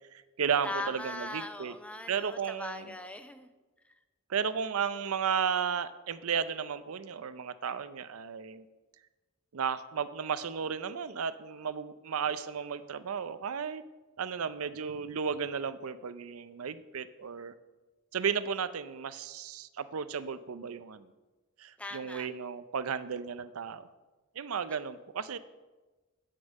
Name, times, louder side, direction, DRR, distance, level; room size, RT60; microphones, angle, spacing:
voice 1, 0.1-1.7 2.1-2.9 4.3-8.6 9.5-13.8 14.2-17.5 18.1-21.1 21.6-23.9 24.4-25.4, right 6 dB, 90° right, 14 dB, 0.5 m, -34 dB
voice 2, 0.6-3.5 21.8-22.3, left 2 dB, 5° left, 9 dB, 0.6 m, -40 dB
10.0 x 5.4 x 8.0 m, 1.2 s
head